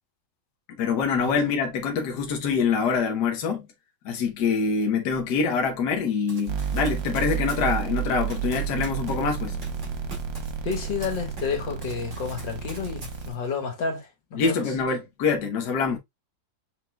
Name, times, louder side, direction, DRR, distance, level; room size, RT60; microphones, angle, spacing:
voice 1, 0.8-3.7 4.0-9.6 14.3-16.0, left 5 dB, 65° left, 1.5 m, -25 dB
Run, 6.3-11.6 11.8-13.6, right 2 dB, 25° right, 2.1 m, -45 dB
sound 1, 6.5-13.3, right 8 dB, 85° right, 1.7 m, -31 dB
voice 2, 10.6-14.6, left 5 dB, 90° left, 2.2 m, -30 dB
5.7 x 4.1 x 2.2 m
omnidirectional pair, 1.9 m